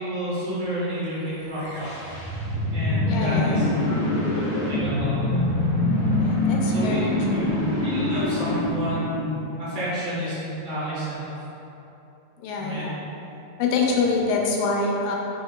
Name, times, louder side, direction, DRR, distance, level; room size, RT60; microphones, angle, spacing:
voice 1, 0.0-2.2 2.7-5.4 6.7-7.5 7.8-11.3 12.6-12.9, equal, 65° right, -11 dB, 2.1 m, -31 dB
sound 1, 1.5-9.6, left 2 dB, 50° left, 1.5 m, -24 dB
voice 2, 3.1-3.8 6.2-7.5 12.4-13.0 13.6-15.2, left 4 dB, 85° left, -1 dB, 2.0 m, -26 dB
5.0 x 3.6 x 2.3 m, 2.9 s
omnidirectional pair, 3.4 m